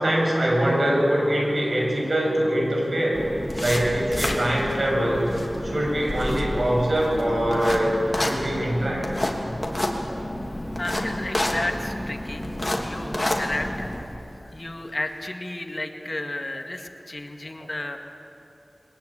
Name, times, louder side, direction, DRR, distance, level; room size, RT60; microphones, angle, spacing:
voice 1, 0.0-3.2 3.6-9.1, right 1 dB, 65° right, -1 dB, 7.0 m, -23 dB
sound 1, 3.1-14.0, left 1 dB, 25° left, 3.0 m, -29 dB
voice 2, 10.8-18.0, left 1 dB, 40° left, 5 dB, 1.8 m, -33 dB
22.5 x 19.5 x 8.7 m, 2.8 s
wide cardioid pair, 45°, 0 cm